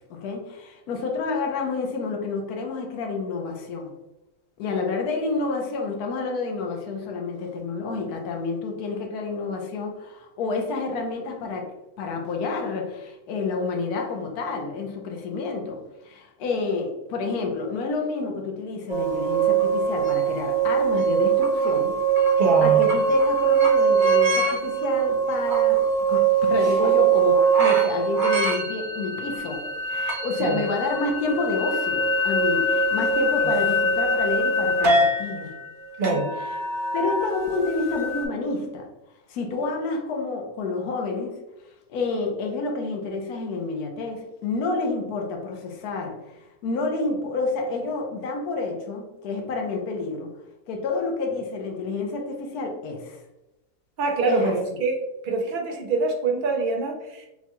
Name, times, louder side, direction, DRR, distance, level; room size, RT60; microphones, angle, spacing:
voice 1, 0.1-3.9 4.6-11.7 12.0-21.9 22.3-29.6 29.9-35.5 36.0-36.2 36.9-38.9 39.3-41.4 41.9-50.3 50.7-53.2 54.3-54.6, left 3 dB, 75° left, 2 dB, 1.3 m, -29 dB
sound 1, 18.9-38.3, right 4 dB, 40° right, 0.8 m, -22 dB
voice 2, 22.4-22.9 30.4-30.6 33.4-33.5 36.0-36.3 54.0-55.0 55.2-57.3, right 3 dB, 75° right, 0 dB, 0.4 m, -24 dB
6.0 x 2.3 x 2.9 m, 0.94 s
omnidirectional pair, 1.7 m